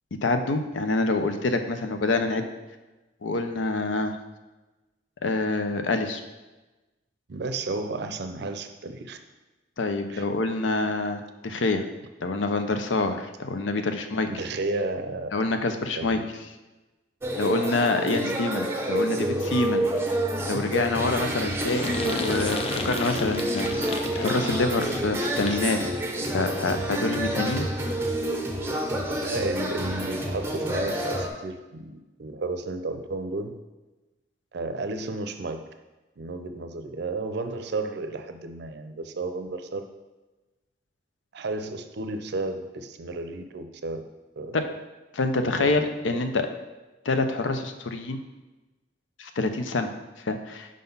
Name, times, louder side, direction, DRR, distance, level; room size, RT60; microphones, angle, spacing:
voice 1, 0.2-2.4 3.2-4.2 5.2-6.2 9.8-11.8 12.2-14.3 15.3-16.2 17.4-19.8 20.5-25.8 26.3-27.7 44.5-44.6 45.1-46.5 47.1-48.2 49.2-49.9 50.2-50.7, left 3 dB, 85° left, 7 dB, 0.6 m, -26 dB
voice 2, 7.3-9.2 10.1-10.3 14.3-15.4 16.0-16.3 18.1-18.4 29.2-33.6 34.5-35.7 36.2-39.8 41.3-44.0 44.4-44.6 45.5-46.2, right 3 dB, 60° right, 8 dB, 0.5 m, -33 dB
sound 1, 17.2-31.3, right 1 dB, 15° right, 0.6 m, -28 dB
sound 2, 21.6-25.8, left 3 dB, 30° left, 0.5 m, -32 dB
5.0 x 3.9 x 5.4 m, 1.1 s
head